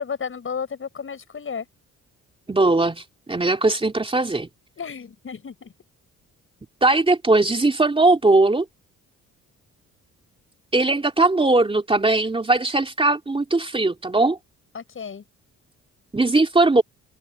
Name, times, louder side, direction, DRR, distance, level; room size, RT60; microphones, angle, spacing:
voice 1, 0.0-1.6 4.8-5.7 14.7-15.2, left 6 dB, 45° left, 6.7 m, -32 dB
voice 2, 2.5-4.5 6.8-8.6 10.7-14.4 16.1-16.8, right 2 dB, 20° right, 2.8 m, -19 dB
cardioid pair, 90°, 30 cm